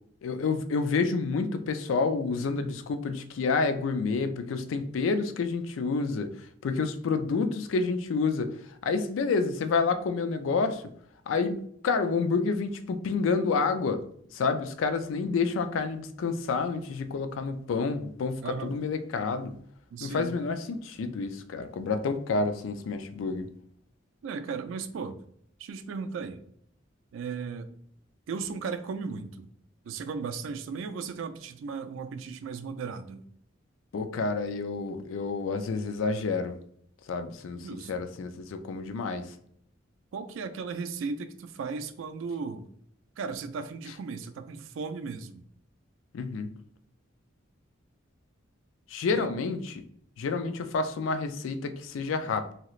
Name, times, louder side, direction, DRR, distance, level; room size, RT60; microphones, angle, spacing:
voice 1, 0.2-6.3 6.6-8.5 8.8-10.8 11.3-11.6 11.8-14.0 14.3-19.6 20.0-23.5 33.9-36.6 37.1-39.3 46.1-46.5 48.9-49.8 50.2-52.5, left 4 dB, 85° left, 9 dB, 0.4 m, -29 dB
voice 2, 18.4-18.8 19.9-20.4 24.2-25.2 25.6-26.4 27.1-27.7 28.3-29.5 29.8-33.2 37.5-38.1 40.1-42.6 43.2-45.4 49.1-49.3, right 5 dB, 80° right, 10 dB, 0.3 m, -36 dB
2.8 x 2.4 x 3.0 m, 0.65 s
head